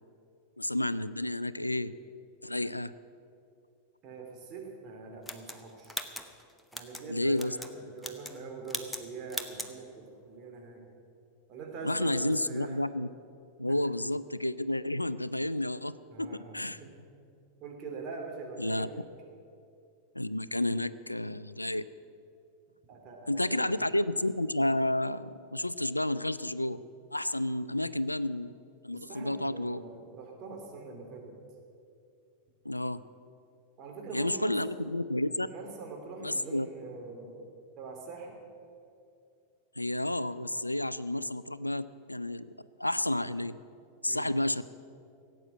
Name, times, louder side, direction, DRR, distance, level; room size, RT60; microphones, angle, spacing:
voice 1, 0.6-1.9 2.4-2.9 7.1-7.6 11.8-13.1 13.6-15.9 16.2-16.8 18.6-18.9 20.2-21.9 23.3-26.8 27.1-28.5 28.8-29.8 32.6-33.0 34.1-35.5 36.2-36.7 39.8-42.5 42.8-43.6 44.0-44.6, left 1 dB, 85° left, 16 dB, 0.4 m, -31 dB
voice 2, 4.0-6.0 6.7-10.8 11.5-12.8 13.7-13.8 16.1-16.9 17.6-19.0 22.9-24.0 28.9-31.3 33.8-34.7 35.5-37.5 37.8-38.4 44.1-44.4, right 4 dB, 35° right, 1 dB, 3.1 m, -43 dB
sound 1, 5.3-7.0 7.4-7.7 8.0-8.4 8.7-9.0 9.3-9.7, left 1 dB, 5° left, 1.0 m, -39 dB
17.0 x 8.8 x 7.6 m, 2.5 s
figure-of-eight pair, 90°, 0 cm